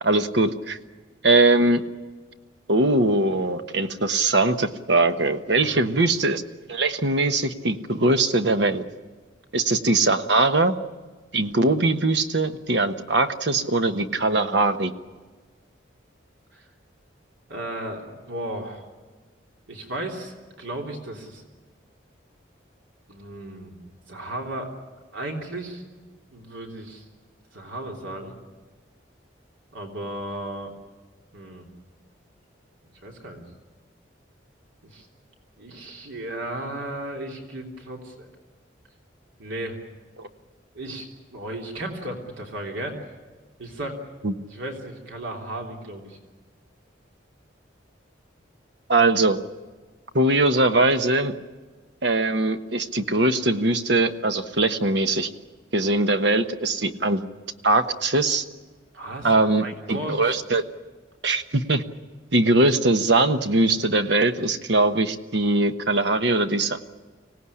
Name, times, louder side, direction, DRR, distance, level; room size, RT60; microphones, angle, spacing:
voice 1, 0.0-0.8 1.2-1.8 2.7-6.4 6.7-8.8 9.5-10.7 11.3-14.9 40.2-40.3 44.2-44.3 48.9-49.4 50.1-51.3 52.0-55.3 55.7-57.2 57.6-58.4 59.2-60.6 61.2-61.8 62.3-66.8, right 2 dB, 65° right, 8 dB, 1.2 m, -21 dB
voice 2, 17.5-18.9 19.7-21.4 23.1-24.7 25.1-25.8 26.3-27.0 27.5-28.4 29.7-30.7 31.3-31.7 33.0-33.4 34.8-35.1 35.6-38.3 39.4-39.8 40.7-43.0 43.6-44.0 44.5-46.2 58.9-59.3 59.6-60.4, right 1 dB, 80° right, 1 dB, 3.4 m, -35 dB
25.0 x 18.0 x 9.9 m, 1.4 s
head